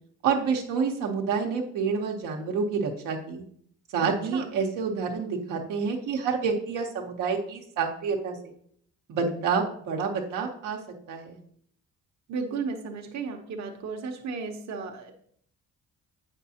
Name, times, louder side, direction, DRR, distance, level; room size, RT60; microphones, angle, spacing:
voice 1, 0.2-3.4 3.9-8.5 9.1-10.8 11.1-11.4, right 5 dB, 90° right, 1 dB, 0.9 m, -28 dB
voice 2, 4.0-4.5 12.3-15.1, right 4 dB, 65° right, 2 dB, 0.9 m, -34 dB
7.4 x 5.3 x 2.8 m, 0.64 s
cardioid pair, 90°, 30 cm